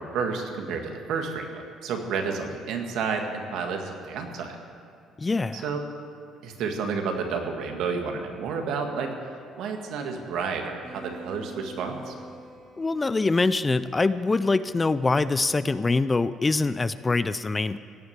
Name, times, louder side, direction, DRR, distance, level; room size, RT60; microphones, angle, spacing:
voice 1, 0.0-4.6 5.5-5.8 6.4-12.2, right 5 dB, 75° right, 3 dB, 1.8 m, -31 dB
voice 2, 5.2-5.6 12.8-17.8, left 3 dB, 20° left, 15 dB, 0.3 m, -24 dB
sound 1, 10.8-16.2, right 2 dB, 20° right, 3.2 m, -47 dB
17.0 x 6.2 x 9.7 m, 2.3 s
cardioid pair, 135°, 0 cm